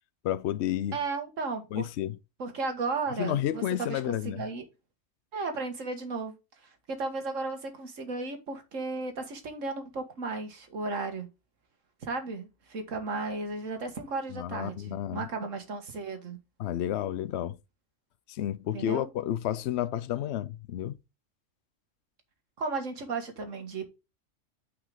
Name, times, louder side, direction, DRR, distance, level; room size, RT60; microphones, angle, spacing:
voice 1, 0.2-1.0 1.7-2.2 3.2-4.5 14.3-15.3 16.6-17.6 18.3-21.0, left 11 dB, 65° left, 0.8 m, -31 dB
voice 2, 0.9-1.9 2.4-4.6 5.3-6.3 6.9-11.3 12.0-16.4 18.7-19.1 22.6-23.9, right 3 dB, 80° right, 1.9 m, -34 dB
9.1 x 4.9 x 3.7 m
omnidirectional pair, 1.3 m